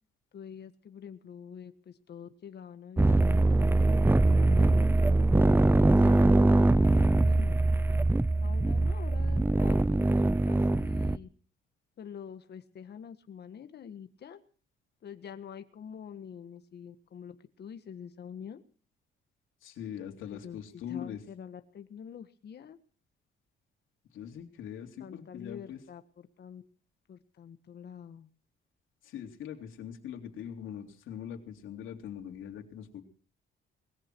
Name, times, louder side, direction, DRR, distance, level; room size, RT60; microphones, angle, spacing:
voice 1, 0.3-3.0 3.3-4.8 5.1-5.4 5.9-7.6 8.4-10.2 10.4-11.3 12.0-14.4 15.0-18.6 20.3-22.8 25.0-26.6 27.1-28.3, left 8 dB, 55° left, 9 dB, 1.6 m, -46 dB
sound 1, 3.0-11.2, right 2 dB, 10° right, 0.7 m, -23 dB
voice 2, 19.6-21.2 24.1-25.8 29.0-33.0, left 9 dB, 80° left, 3 dB, 3.5 m, -42 dB
21.0 x 14.5 x 4.6 m, 0.42 s
cardioid pair, 90°, 20 cm